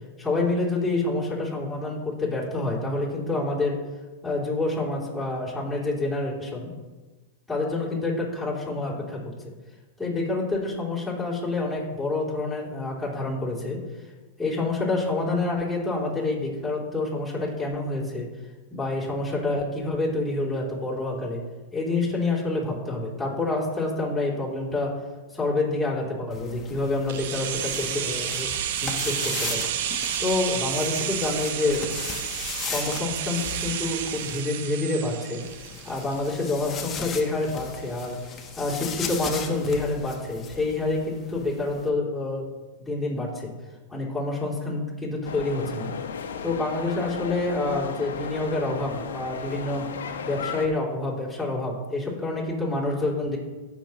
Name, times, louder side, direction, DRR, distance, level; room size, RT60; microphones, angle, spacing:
voice 1, 0.2-3.8 4.2-6.7 7.5-9.2 10.0-13.8 14.4-18.3 18.7-21.4 21.7-24.9 25.3-29.6 30.2-31.9 32.7-35.4 35.8-38.2 38.6-42.5 42.8-43.5 43.9-45.9 46.4-49.8 50.2-53.4, left 2 dB, 5° left, -7 dB, 3.1 m, -27 dB
sound 1, 26.3-34.4 35.4-41.9, left 6 dB, 25° left, 1.1 m, -38 dB
sound 2, 27.1-36.9 37.2-37.3, right 9 dB, 65° right, 0.8 m, -31 dB
sound 3, 45.2-50.7, left 6 dB, 85° left, 0.9 m, -35 dB
16.5 x 6.0 x 3.1 m, 1.2 s
hypercardioid pair, 125°, 0 cm